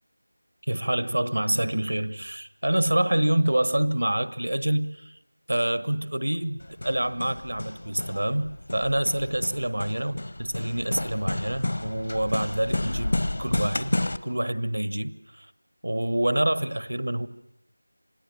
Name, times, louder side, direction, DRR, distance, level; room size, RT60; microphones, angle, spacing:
voice 1, 0.6-5.2 5.5-15.5 15.8-17.3, right 1 dB, 80° right, 1.2 m, -27 dB
Hammer, 6.6-14.2, left 1 dB, 55° left, 0.9 m, -31 dB
27.5 x 18.0 x 7.6 m
figure-of-eight pair, 175°, 0 cm